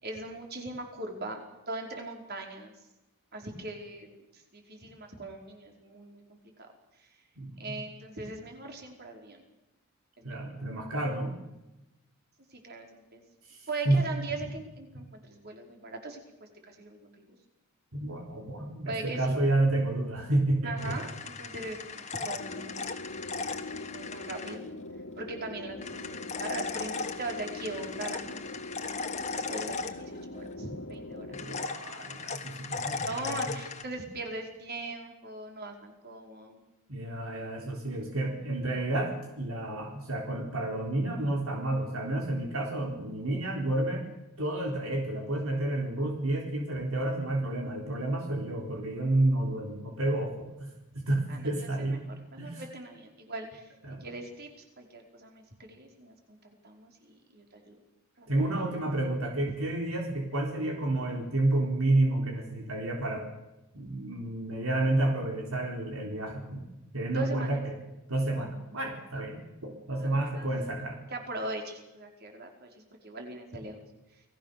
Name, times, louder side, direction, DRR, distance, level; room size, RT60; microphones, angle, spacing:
voice 1, 0.0-2.7 3.3-6.7 7.0-7.1 7.6-9.4 10.2-10.5 12.5-13.3 13.7-17.3 18.8-19.4 20.6-23.0 23.6-24.7 25.2-28.4 28.8-31.3 32.7-36.6 51.3-53.7 54.0-54.5 54.8-57.8 58.2-58.3 67.1-67.5 70.0-70.5 71.1-73.8, right 2 dB, 50° right, 2 dB, 5.0 m, -40 dB
voice 2, 7.4-7.7 10.2-11.4 13.5-14.0 17.9-21.0 31.2-33.6 36.9-44.1 44.4-50.7 50.9-52.0 52.4-52.6 53.8-54.1 58.3-63.3 63.7-66.6 66.9-67.8 68.1-71.0, right 2 dB, 75° right, 2 dB, 3.8 m, -30 dB
sound 1, 20.8-24.6 25.8-30.4 31.3-33.8, left 4 dB, 35° left, 1.8 m, -37 dB
sound 2, 22.4-31.7, left 2 dB, 75° left, 2.6 m, -42 dB
29.0 x 20.0 x 6.8 m, 0.96 s
head